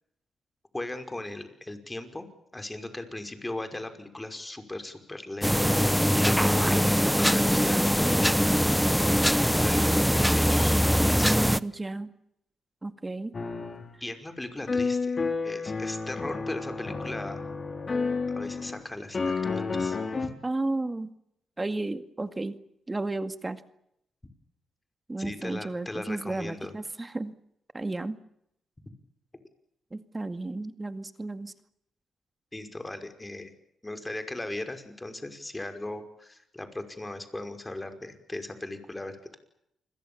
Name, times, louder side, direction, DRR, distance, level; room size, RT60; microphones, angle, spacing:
voice 1, 0.7-2.3 2.5-5.7 6.1-8.1 9.6-10.8 11.1-11.4 14.0-15.2 15.4-17.5 18.4-20.3 25.2-26.7 32.5-33.5 33.8-39.4, left 2 dB, 15° left, 8 dB, 5.5 m, -38 dB
sound 1, 5.4-11.6, equal, ahead, 1.0 m, -22 dB
voice 2, 11.3-12.1 12.8-13.3 20.4-21.1 21.6-22.6 22.9-23.6 25.1-27.4 27.7-28.2 29.9-31.5, right 2 dB, 20° right, 10 dB, 2.1 m, -33 dB
sound 2, 13.3-13.9 14.7-18.8 19.1-20.3, left 4 dB, 40° left, 4.8 m, -30 dB
29.0 x 22.5 x 7.2 m, 0.76 s
cardioid pair, 70°, 0 cm